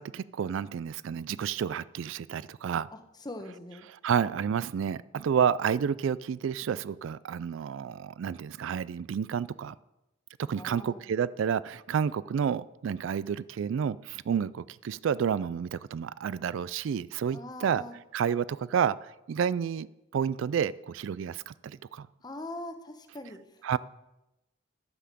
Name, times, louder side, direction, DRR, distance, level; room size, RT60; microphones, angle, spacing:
voice 1, 0.0-2.9 4.0-9.8 10.4-17.8 18.1-19.9 20.1-22.1 23.6-23.8, right 7 dB, 70° right, 19 dB, 0.3 m, -30 dB
voice 2, 2.9-3.9 10.6-11.1 17.3-17.9 22.2-23.8, left 1 dB, 20° left, 7 dB, 0.9 m, -42 dB
12.0 x 5.7 x 7.5 m, 0.95 s
head